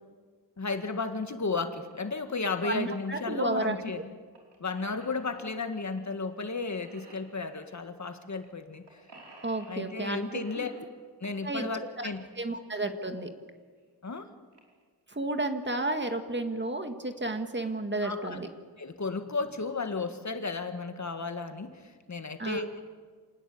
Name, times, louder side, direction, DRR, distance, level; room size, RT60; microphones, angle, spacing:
voice 1, 0.6-4.1 4.6-8.8 9.7-10.7 11.2-12.2 14.0-14.3 18.0-18.4 18.8-22.8, left 4 dB, 45° left, 8 dB, 1.8 m, -34 dB
sound 1, 1.9-2.0 2.4-3.2 4.3-6.0 6.3-6.5 6.7-7.6 8.3-8.5 8.7-10.0 10.3-11.5 13.1-13.2 13.8-13.9 14.1-14.2 14.5-14.8 15.3-15.6, right 2 dB, 85° right, 5.3 m, -54 dB
voice 2, 2.6-3.7 9.4-10.7 11.4-11.7 12.0-12.1 12.4-13.3 15.1-18.5 22.4-22.6, right 2 dB, 25° right, 7 dB, 1.9 m, -32 dB
27.5 x 19.0 x 8.6 m, 1.6 s
wide cardioid pair, 120°, 40 cm